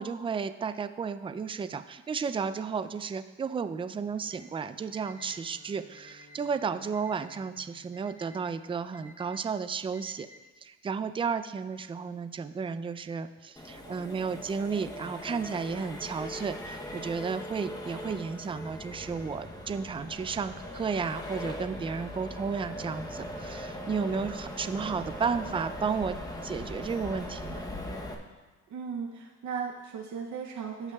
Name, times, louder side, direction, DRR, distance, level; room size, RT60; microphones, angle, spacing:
voice 1, 0.0-10.3 10.6-26.2 26.4-27.6, right 5 dB, 20° right, 11 dB, 0.3 m, -33 dB
Bowed string instrument, 3.8-9.0, equal, 50° left, 2.2 m, -60 dB
Alarm, 4.2-4.4 4.9-5.4 5.9-6.4 6.9-7.4 7.9-8.4 8.9-9.4 9.9-10.4, left 2 dB, 40° right, 1.6 m, -53 dB
Accelerating revving vroom, 13.6-28.1, left 1 dB, 10° left, 0.9 m, -40 dB
voice 2, 28.7-30.9, right 6 dB, 70° right, 0 dB, 0.8 m, -36 dB
15.5 x 5.6 x 2.3 m, 1.2 s
cardioid pair, 90°, 30 cm